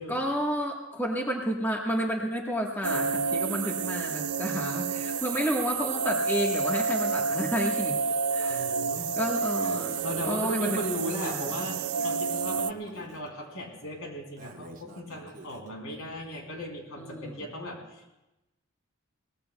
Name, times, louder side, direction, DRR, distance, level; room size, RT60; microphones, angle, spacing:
voice 1, 0.1-8.0 8.3-8.7 9.2-10.0 10.2-11.8 17.0-17.7, equal, 10° left, 0 dB, 1.3 m, -31 dB
sound 1, 2.8-12.7, right 5 dB, 85° right, 0.4 m, -29 dB
voice 2, 8.5-9.1 10.0-18.1, equal, 80° left, 0 dB, 3.4 m, -37 dB
sound 2, 9.4-14.3, equal, 50° left, 4.5 m, -54 dB
Breathing, 9.6-10.9 12.0-13.3 14.4-15.7, right 2 dB, 40° right, 1.1 m, -49 dB
23.0 x 18.5 x 2.3 m, 0.98 s
head